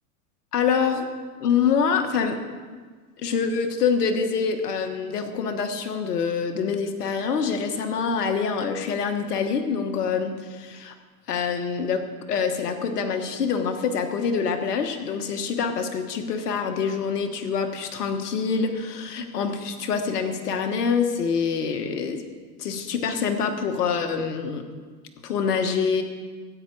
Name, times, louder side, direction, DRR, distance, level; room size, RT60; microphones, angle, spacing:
voice 1, 0.5-1.1 1.4-2.4 3.2-10.9 11.3-22.2 22.6-24.6 25.2-26.0, left 6 dB, 85° left, 6 dB, 1.5 m, -25 dB
15.0 x 8.8 x 4.7 m, 1.5 s
hypercardioid pair, 110°, 45 cm